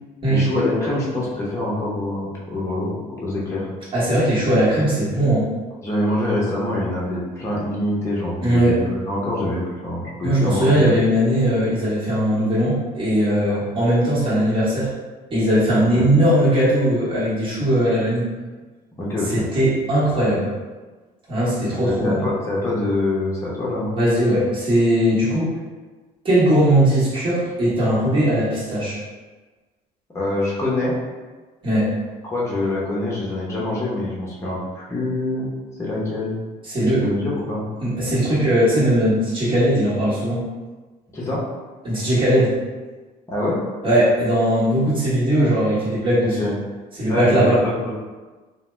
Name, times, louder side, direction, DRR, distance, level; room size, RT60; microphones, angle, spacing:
voice 1, 0.3-2.9 3.2-3.6 5.8-11.0 13.5-13.6 15.9-16.1 19.0-19.4 21.8-24.0 30.1-30.9 32.2-35.5 35.8-36.3 37.0-37.6 41.1-41.4 43.3-43.6 46.4-46.5 47.1-47.9, left 1 dB, 15° left, -6 dB, 0.8 m, -25 dB
voice 2, 3.9-5.5 8.4-8.8 10.2-14.9 15.3-18.3 19.3-20.5 21.3-22.2 23.9-25.5 26.2-29.0 31.6-31.9 36.7-37.1 37.8-40.4 41.8-42.5 43.8-46.4 46.9-47.6, right 1 dB, 30° right, -9 dB, 1.2 m, -19 dB
2.7 x 2.1 x 3.2 m, 1.3 s
cardioid pair, 110°, 17 cm